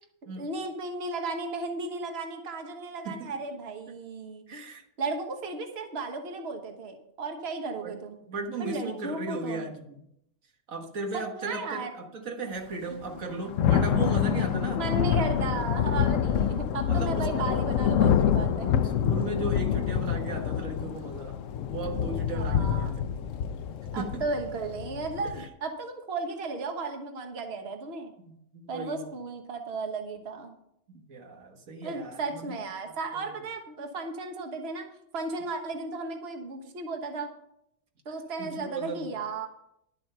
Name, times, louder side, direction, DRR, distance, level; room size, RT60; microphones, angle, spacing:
voice 1, 0.4-4.7 5.0-8.2 8.6-9.7 11.1-11.9 13.2-13.3 14.2-14.3 14.7-18.7 22.3-22.9 23.9-28.1 28.7-30.5 31.8-34.9 35.1-37.3 38.0-39.5, right 3 dB, 50° right, 4 dB, 1.5 m, -35 dB
voice 2, 3.0-3.4 4.5-4.8 7.8-7.9 8.3-10.0 10.7-14.8 16.2-16.4 16.9-17.4 18.4-23.3 23.9-24.2 25.3-25.5 28.3-29.1 31.1-32.5 33.1-33.3 38.4-39.1, right 3 dB, 90° right, 3 dB, 1.8 m, -36 dB
Thunder / Rain, 13.1-25.5, left 9 dB, 75° left, 1.0 m, -27 dB
11.5 x 7.7 x 5.5 m, 0.77 s
omnidirectional pair, 1.4 m